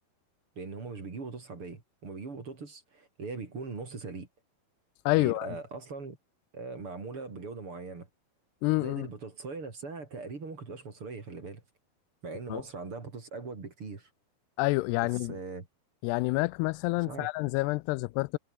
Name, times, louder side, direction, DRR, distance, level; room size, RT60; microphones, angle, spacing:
voice 1, 0.6-4.3 5.2-6.2 6.5-8.1 8.8-11.6 12.2-14.1 15.0-15.7 17.1-17.3, right 4 dB, 35° right, 4.2 m, -40 dB
voice 2, 5.1-5.6 8.6-9.1 12.5-12.6 14.6-15.4 16.0-18.4, left 23 dB, 90° left, 2.6 m, -28 dB
omnidirectional pair, 4.7 m